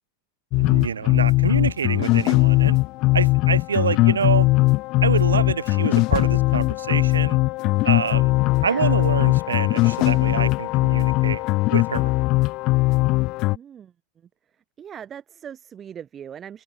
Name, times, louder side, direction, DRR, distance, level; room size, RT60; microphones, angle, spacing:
sound 1, 0.5-13.6, left 21 dB, 40° left, 0.4 m, -20 dB
voice 1, 0.5-2.8 3.1-4.5 5.0-7.4 7.8-8.3 8.6-11.4 11.7-12.1, right 6 dB, 70° right, 1.0 m, -26 dB
voice 2, 8.6-9.0 13.5-13.9 14.8-16.6, right 8 dB, 25° right, 1.3 m, -40 dB
open air
figure-of-eight pair, 90°, 0 cm